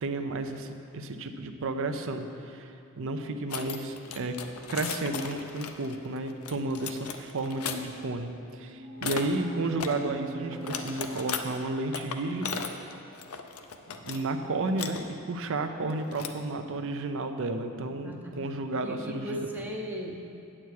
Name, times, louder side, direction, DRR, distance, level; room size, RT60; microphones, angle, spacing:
voice 1, 0.0-4.4 4.7-12.6 14.0-19.5, right 2 dB, 60° right, 7 dB, 0.6 m, -32 dB
sound 1, 3.5-7.8 9.0-9.2 9.8-10.0 10.5-11.4 11.9-14.2 14.5-15.0 15.9-16.5, left 6 dB, 70° left, 0.6 m, -36 dB
sound 2, 8.4-12.2, right 2 dB, 90° left, 2.0 m, -43 dB
voice 2, 9.2-9.9 18.0-18.4 18.8-20.2, right 1 dB, 10° right, 0 dB, 0.6 m, -38 dB
8.7 x 8.0 x 4.7 m, 2.5 s
head